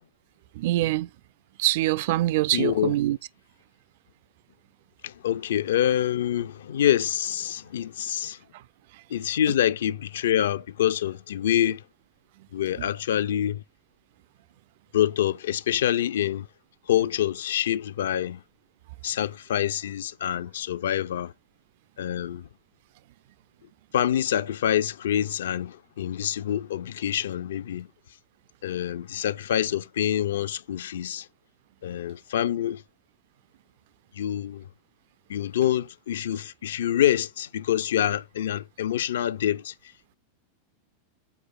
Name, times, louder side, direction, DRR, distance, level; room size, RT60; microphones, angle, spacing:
voice 1, 0.6-1.1 1.6-3.2, right 15 dB, 50° right, 0.4 m, -24 dB
voice 2, 2.5-2.9 5.0-8.4 9.1-11.8 12.5-13.6 14.9-16.5 16.9-18.4 19.0-21.3 22.0-22.5 23.9-27.9 28.6-31.3 31.8-32.8 34.1-34.7 35.3-39.7, left 11 dB, 60° left, 0.5 m, -26 dB
8.1 x 4.7 x 4.0 m
figure-of-eight pair, 90°, 0 cm